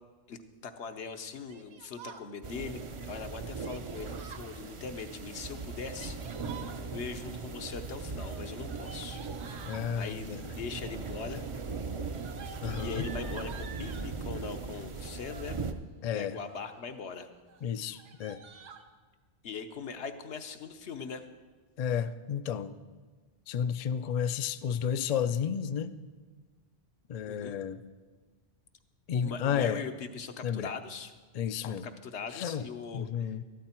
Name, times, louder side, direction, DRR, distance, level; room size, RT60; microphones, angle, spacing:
voice 1, 0.3-6.2 6.9-9.2 9.6-11.4 12.8-15.6 16.1-17.3 19.4-21.2 27.3-27.6 29.1-31.1 31.6-33.4, left 5 dB, 75° left, 7 dB, 1.1 m, -41 dB
Yell, 1.5-2.3 3.6-4.5 5.7-6.8 8.1-9.9 10.7-11.2 11.5-14.1 15.0-15.6 16.2-16.7 17.1-17.2 17.5-17.6 17.9-18.8, right 6 dB, 75° right, 1.2 m, -49 dB
sound 1, 2.4-15.7, right 4 dB, 40° right, 0.5 m, -39 dB
voice 2, 9.6-10.5 12.6-13.1 16.0-16.4 17.6-18.4 21.8-22.7 23.5-25.9 27.1-27.8 29.1-29.8 30.4-30.7 31.3-31.9 32.3-32.7 32.9-33.4, left 8 dB, 60° left, 11 dB, 0.4 m, -32 dB
13.0 x 12.5 x 4.4 m, 1.4 s
omnidirectional pair, 1.2 m